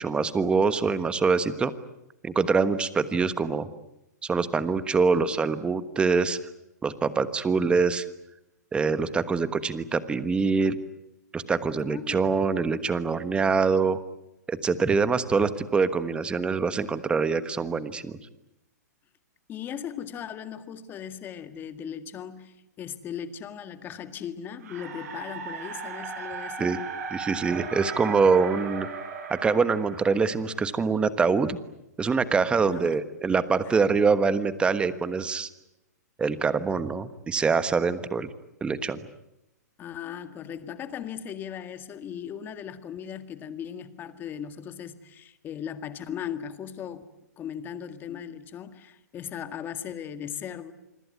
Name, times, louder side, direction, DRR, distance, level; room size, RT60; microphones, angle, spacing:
voice 1, 0.0-1.7 2.2-3.7 4.2-6.4 6.8-8.1 8.7-10.8 11.3-14.0 14.5-18.2 26.6-26.8 27.1-28.9 29.3-31.6 32.0-35.5 36.2-38.3 38.6-39.0, right 5 dB, 10° right, 14 dB, 1.3 m, -24 dB
voice 2, 11.8-12.3 19.5-26.7 32.4-32.9 39.8-47.0 47.4-50.7, left 9 dB, 20° left, 11 dB, 1.9 m, -38 dB
sound 1, 24.6-30.8, right 5 dB, 60° right, 5.6 m, -37 dB
27.0 x 21.5 x 9.6 m, 0.90 s
hypercardioid pair, 140°, 10 cm